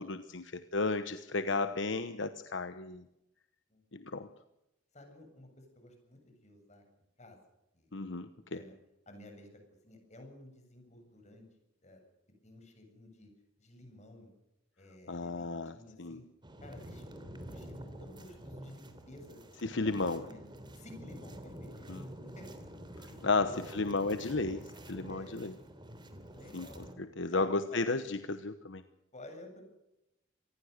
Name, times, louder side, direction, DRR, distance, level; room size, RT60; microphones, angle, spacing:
voice 1, 0.0-3.0 3.9-4.3 7.9-8.6 15.1-16.2 19.6-20.2 21.9-22.0 23.2-25.6 26.5-28.8, left 3 dB, 65° left, 10 dB, 1.1 m, -34 dB
voice 2, 3.7-4.2 4.9-6.8 7.2-7.4 7.7-7.9 8.5-8.7 9.1-11.5 11.8-12.0 12.4-13.3 13.6-14.3 14.8-16.3 16.6-19.4 19.7-19.8 20.1-20.4 20.7-22.0 22.4-22.8 23.0-24.5 25.1-25.5 26.1-26.8 27.3-27.9 29.1-29.6, left 1 dB, 35° left, 4 dB, 7.7 m, -53 dB
sound 1, 16.4-26.9, right 1 dB, 25° right, 3.3 m, -48 dB
27.0 x 20.0 x 6.7 m, 0.88 s
head